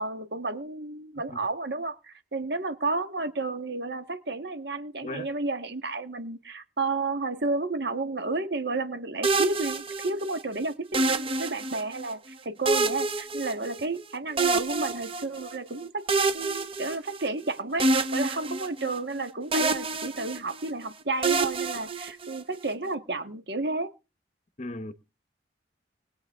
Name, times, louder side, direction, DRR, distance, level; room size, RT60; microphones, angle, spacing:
voice 1, 0.0-16.0 16.3-23.9, right 3 dB, 60° right, 1.5 m, -31 dB
sound 1, 9.2-10.4 10.9-12.1 12.6-14.0 14.4-15.6 16.1-17.4 17.8-19.2 19.5-20.7 21.2-22.6, right 3 dB, 30° right, 1.0 m, -27 dB
voice 2, 24.6-24.9, left 2 dB, 40° left, 0.9 m, -36 dB
20.5 x 8.6 x 3.6 m
head